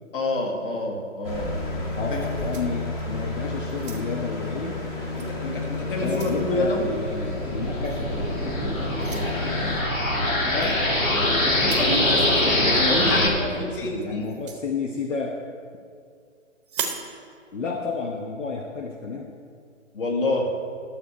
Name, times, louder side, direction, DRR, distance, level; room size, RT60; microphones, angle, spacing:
voice 1, 0.1-2.2 5.2-6.9 11.8-14.3 19.9-20.5, left 2 dB, 45° left, 0 dB, 2.0 m, -27 dB
sound 1, 1.2-9.8, left 2 dB, 20° left, 1.1 m, -32 dB
voice 2, 2.0-4.8 6.0-8.1 10.5-10.8 13.0-15.4 17.5-19.3, left 4 dB, 65° left, 2 dB, 1.1 m, -31 dB
sound 2, 2.1-3.2 3.7-4.3 5.1-5.3 5.7-6.4 7.8-8.1 9.0-9.3 10.6-10.8 11.6-12.0 14.2-14.6 16.6-17.1, right 6 dB, 20° right, 0.8 m, -37 dB
sound 3, 6.0-13.3, left 1 dB, 85° left, 2.3 m, -24 dB
12.0 x 7.1 x 4.8 m, 2.2 s
figure-of-eight pair, 150°, 39 cm